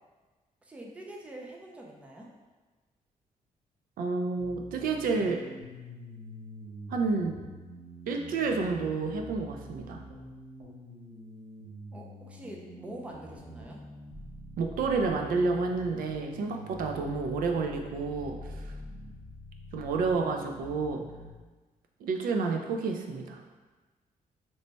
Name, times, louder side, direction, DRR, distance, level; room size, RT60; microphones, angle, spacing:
voice 1, 0.6-2.3 11.9-13.8, right 1 dB, 10° right, -1 dB, 0.3 m, -45 dB
voice 2, 4.0-5.4 6.9-7.4 8.1-10.0 14.6-18.7 19.7-21.0 22.0-23.4, right 4 dB, 80° right, 3 dB, 0.4 m, -30 dB
sound 1, 4.4-21.3, left 1 dB, 60° right, 0.9 m, -46 dB
3.2 x 2.1 x 3.9 m, 1.3 s
wide cardioid pair, 175°, 15 cm